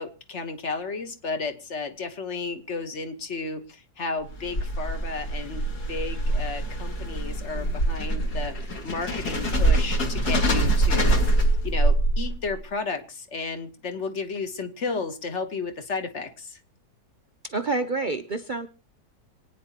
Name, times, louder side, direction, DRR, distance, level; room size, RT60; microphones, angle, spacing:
voice 1, 0.0-16.6, left 4 dB, 40° left, 8 dB, 1.5 m, -33 dB
sound 1, 4.2-12.5, right 1 dB, 60° left, 2.5 m, -24 dB
voice 2, 17.4-18.7, right 3 dB, 75° right, 6 dB, 0.4 m, -28 dB
27.0 x 9.7 x 2.9 m, 0.31 s
omnidirectional pair, 2.0 m